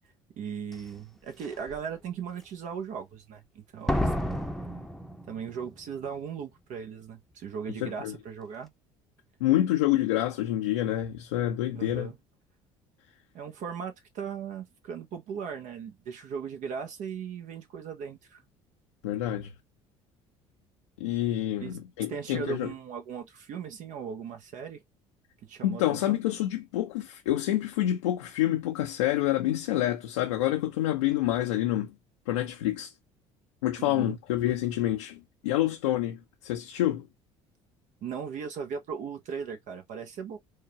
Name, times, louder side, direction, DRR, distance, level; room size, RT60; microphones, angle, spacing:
voice 1, 0.4-4.1 5.3-8.7 11.7-12.2 13.3-18.4 21.6-21.8 22.1-24.8 25.5-26.2 33.8-34.2 38.0-40.4, right 7 dB, 60° right, 1.0 m, -38 dB
Slam, 0.7-0.8 1.4-1.8 3.9-5.8 6.0-6.1, equal, ahead, 0.8 m, -31 dB
voice 2, 7.8-8.1 9.4-12.1 19.0-19.5 21.0-22.7 25.6-31.9 32.3-32.9 33.6-37.1, left 13 dB, 85° left, 0.6 m, -27 dB
4.7 x 2.3 x 2.9 m
hypercardioid pair, 65°, 15 cm